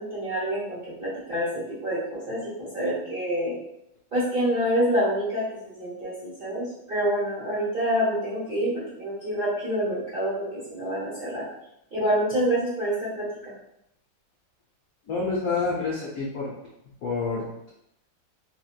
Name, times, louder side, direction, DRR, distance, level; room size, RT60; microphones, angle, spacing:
voice 1, 0.0-3.5 4.1-11.4 11.9-13.3, equal, 40° right, -9 dB, 0.8 m, -27 dB
voice 2, 15.1-16.5 17.0-17.7, left 4 dB, 85° left, -5 dB, 0.7 m, -28 dB
4.1 x 2.2 x 2.4 m, 0.83 s
omnidirectional pair, 2.3 m